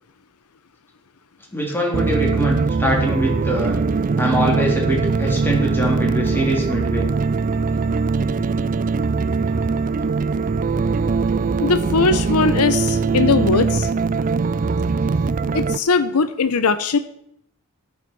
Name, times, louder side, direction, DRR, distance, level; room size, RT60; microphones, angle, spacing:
voice 1, 1.5-3.8 4.2-7.1, equal, 10° left, -2 dB, 3.2 m, -23 dB
sound 1, 1.9-15.8, right 4 dB, 40° right, 0.4 m, -21 dB
voice 2, 11.6-13.9 15.5-17.0, left 4 dB, 75° left, 11 dB, 0.7 m, -19 dB
16.5 x 7.3 x 4.6 m, 0.73 s
head